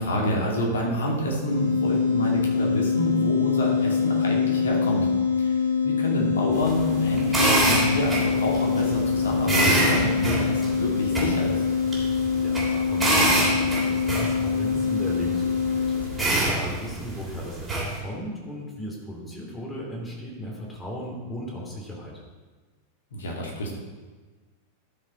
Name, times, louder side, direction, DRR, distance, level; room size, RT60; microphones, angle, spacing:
voice 1, 0.0-5.1 5.4-5.5 5.8-11.6 23.1-23.7, equal, 65° left, -1 dB, 2.5 m, -28 dB
sound 1, 1.5-16.2, left 6 dB, 85° right, 1.4 m, -24 dB
sound 2, 6.5-18.0, right 2 dB, 15° right, 3.3 m, -26 dB
voice 2, 11.9-22.2, equal, 10° left, -2 dB, 2.7 m, -36 dB
12.0 x 6.6 x 4.4 m, 1.3 s
figure-of-eight pair, 90°, 0 cm